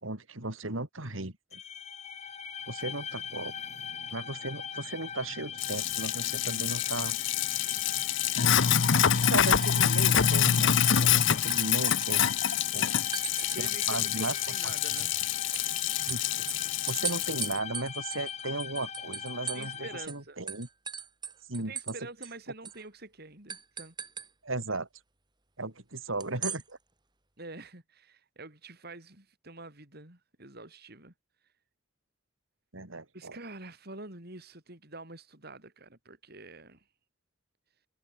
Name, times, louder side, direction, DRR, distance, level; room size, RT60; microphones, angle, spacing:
voice 1, 0.0-1.6 2.7-3.5 4.1-7.2 9.1-12.3 12.7-12.9 13.6-14.4 14.6-14.7 16.1-16.5 16.9-20.7 21.5-21.9 24.4-24.9 25.6-26.8 32.7-33.4, right 2 dB, 80° right, 3.7 m, -36 dB
sound 1, 1.5-20.1, left 7 dB, 35° left, 1.0 m, -40 dB
Sink (filling or washing), 5.6-17.5, left 9 dB, 65° left, 0.8 m, -26 dB
sound 2, 9.1-10.6 10.9-12.6 13.1-13.9 14.2-19.8 20.1-20.2 20.5-22.0 22.2-22.3 22.6-22.8 23.5-24.3 26.2-26.6, right 7 dB, 20° right, 4.1 m, -39 dB
voice 2, 13.5-15.2 19.5-20.4 21.5-23.9 27.4-31.1 31.4-31.5 33.1-36.9, right 2 dB, 50° right, 5.1 m, -46 dB
head